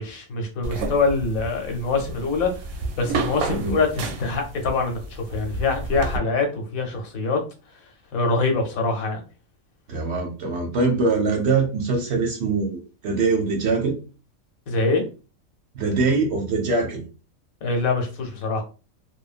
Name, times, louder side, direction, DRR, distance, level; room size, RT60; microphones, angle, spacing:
voice 1, 0.0-2.7 3.0-7.4 8.1-9.2 14.7-15.0 17.6-18.6, left 3 dB, 80° left, 3 dB, 1.2 m, -24 dB
sound 1, 0.6-6.2, right 3 dB, 90° right, 1.0 m, -31 dB
voice 2, 9.9-12.8 13.0-14.0 15.7-17.0, right 3 dB, 60° right, 2 dB, 0.8 m, -23 dB
3.0 x 2.2 x 2.4 m, 0.33 s
omnidirectional pair, 1.5 m